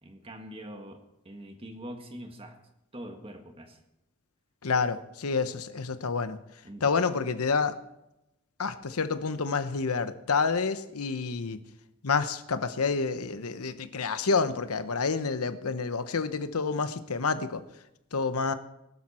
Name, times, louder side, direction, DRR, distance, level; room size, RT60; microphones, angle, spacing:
voice 1, 0.0-2.6 2.9-3.8 6.7-6.9, equal, 25° right, 5 dB, 1.7 m, -43 dB
voice 2, 4.6-6.4 6.8-7.8 8.6-11.6 12.0-17.6 18.1-18.5, left 4 dB, 85° left, 11 dB, 0.9 m, -28 dB
20.5 x 12.5 x 4.4 m, 0.89 s
head